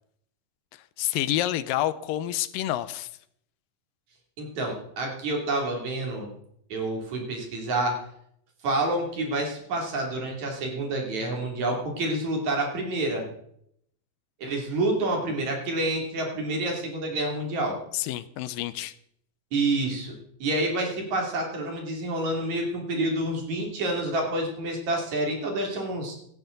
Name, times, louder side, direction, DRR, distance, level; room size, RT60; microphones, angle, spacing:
voice 1, 1.0-3.1 17.9-18.9, left 13 dB, 80° left, 2.3 m, -28 dB
voice 2, 4.4-6.3 6.7-8.0 8.6-13.3 14.4-17.8 19.5-20.2 20.4-26.1, right 2 dB, 55° right, 4.1 m, -28 dB
17.5 x 12.5 x 3.9 m
omnidirectional pair, 4.0 m